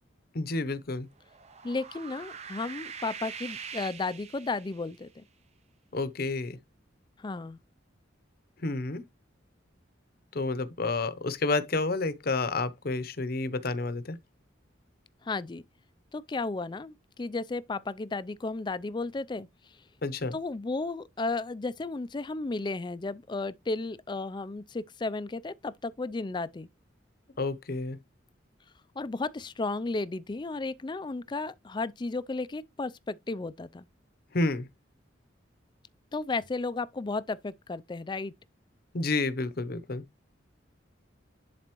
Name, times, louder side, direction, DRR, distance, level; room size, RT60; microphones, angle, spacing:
voice 1, 0.3-1.1 5.9-6.6 8.6-9.0 10.3-14.2 20.0-20.4 27.4-28.0 34.3-34.7 38.9-40.0, left 3 dB, 50° left, 0.8 m, -30 dB
sound 1, 1.2-5.0, right 6 dB, 35° right, 0.5 m, -43 dB
voice 2, 1.6-5.3 7.2-7.6 15.2-15.6 16.1-19.5 20.3-26.7 29.0-33.9 36.1-38.3, left 3 dB, 25° left, 0.4 m, -34 dB
11.0 x 4.0 x 3.0 m
head